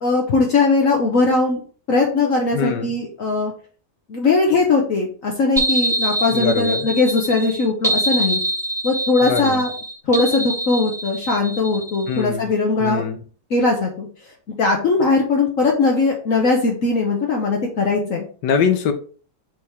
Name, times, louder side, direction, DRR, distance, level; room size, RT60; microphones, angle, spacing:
voice 1, 0.0-1.6 1.9-3.5 4.1-8.4 8.8-9.7 10.1-13.0 13.5-14.1 14.6-18.2, left 3 dB, 55° left, 1.4 m, -19 dB
voice 2, 2.5-2.9 6.3-6.9 9.2-9.6 12.1-12.5 12.8-13.2 18.0-18.1 18.4-18.9, left 6 dB, 85° left, 1.5 m, -22 dB
sound 1, 5.6-12.2, right 1 dB, ahead, 1.8 m, -25 dB
5.7 x 4.8 x 3.4 m
omnidirectional pair, 1.8 m